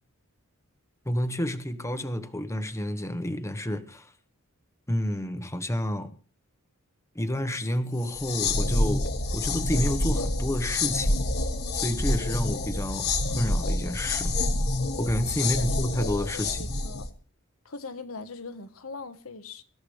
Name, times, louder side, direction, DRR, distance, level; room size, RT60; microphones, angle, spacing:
voice 1, 1.0-4.1 4.9-6.1 7.1-9.1 9.3-11.2 11.7-14.4 15.0-16.7, equal, 15° left, 1.2 m, -30 dB
sound 1, 8.0-17.1, left 2 dB, 50° left, 1.4 m, -27 dB
voice 2, 15.4-15.8 16.3-17.1 17.6-19.6, left 3 dB, 80° left, 1.3 m, -41 dB
24.0 x 13.5 x 3.3 m
head